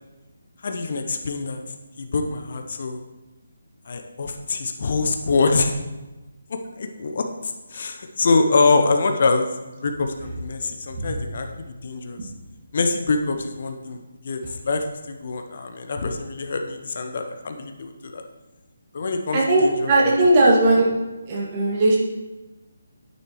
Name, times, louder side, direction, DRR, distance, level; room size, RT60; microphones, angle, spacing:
voice 1, 0.6-1.6 2.0-3.0 3.9-5.7 6.5-9.5 9.8-12.3 12.7-14.4 14.6-18.2 18.9-20.3, left 3 dB, 45° left, 5 dB, 0.8 m, -24 dB
voice 2, 19.3-20.9 21.3-22.0, right 2 dB, 25° right, -4 dB, 2.1 m, -17 dB
9.6 x 9.4 x 3.1 m, 1.1 s
figure-of-eight pair, 145°, 0 cm